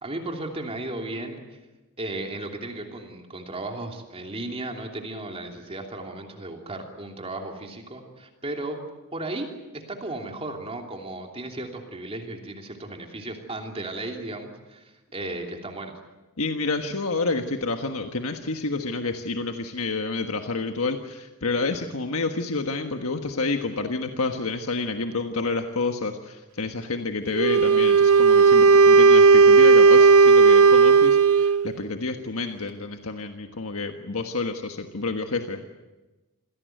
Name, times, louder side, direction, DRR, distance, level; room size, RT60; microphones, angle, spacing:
voice 1, 0.0-1.6 2.0-8.8 9.1-16.0, right 2 dB, 30° right, 2 dB, 3.0 m, -35 dB
voice 2, 16.4-35.7, left 3 dB, 75° left, 5 dB, 1.5 m, -29 dB
Wind instrument woodwind instrument, 27.3-31.7, right 4 dB, 80° right, 0.8 m, -14 dB
27.5 x 17.0 x 9.2 m, 1.1 s
head